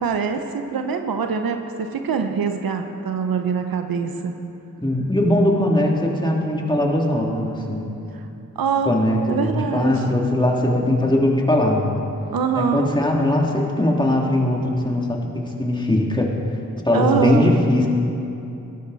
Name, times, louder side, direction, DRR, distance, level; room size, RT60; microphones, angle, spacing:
voice 1, 0.0-4.3 8.6-8.9 9.3-9.9 12.3-12.9 16.9-17.6, right 5 dB, 85° right, 6 dB, 0.9 m, -23 dB
voice 2, 4.8-7.8 8.9-11.9 12.5-15.3 15.6-16.3 16.8-17.9, left 1 dB, 15° left, -1 dB, 2.6 m, -20 dB
17.5 x 13.0 x 4.1 m, 2.8 s
cardioid pair, 45°, 35 cm